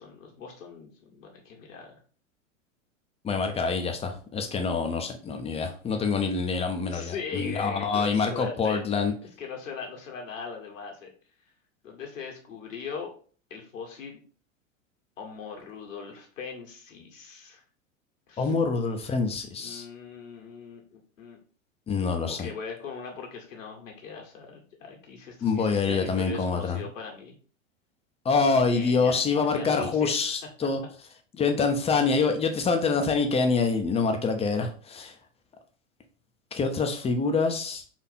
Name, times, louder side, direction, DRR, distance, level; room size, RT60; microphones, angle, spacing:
voice 1, 0.0-2.0 6.9-9.1 9.4-11.1 11.8-13.1 13.5-14.2 15.2-17.6 18.3-18.5 19.5-21.4 22.4-27.4 28.4-30.2, left 5 dB, 75° left, 1 dB, 1.7 m, -40 dB
voice 2, 3.2-9.1 18.4-19.8 21.9-22.5 25.4-26.8 28.2-30.8 31.3-35.1 36.5-37.8, left 4 dB, 15° left, 5 dB, 0.7 m, -26 dB
4.3 x 2.6 x 4.2 m, 0.42 s
hypercardioid pair, 95°, 39 cm